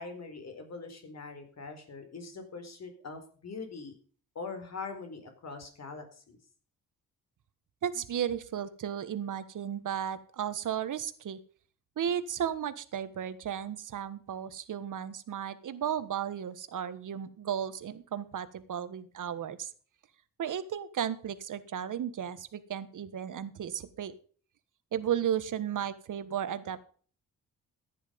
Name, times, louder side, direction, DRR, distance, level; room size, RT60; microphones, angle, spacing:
voice 1, 0.0-4.0 4.3-6.4, left 4 dB, 50° left, 6 dB, 4.5 m, -42 dB
voice 2, 7.8-11.4 12.0-19.7 20.4-24.1 24.9-26.9, right 9 dB, 65° right, 12 dB, 1.5 m, -34 dB
14.5 x 10.0 x 5.3 m, 0.43 s
cardioid pair, 120°, 34 cm